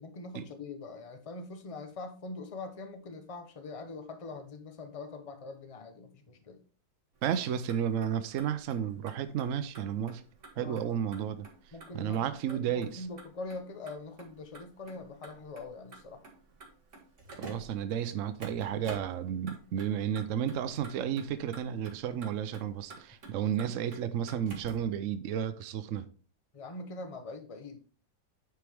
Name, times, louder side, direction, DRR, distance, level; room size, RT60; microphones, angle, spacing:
voice 1, 0.0-6.6 10.6-10.9 11.7-16.2 26.5-27.8, left 3 dB, 40° left, 0.5 m, -43 dB
Motor vehicle (road), 7.2-24.9, right 3 dB, 40° right, 2.0 m, -51 dB
voice 2, 7.2-10.2 10.6-11.5 11.9-13.0 17.4-26.0, right 9 dB, 80° right, 0.7 m, -32 dB
9.3 x 4.7 x 3.5 m
omnidirectional pair, 2.1 m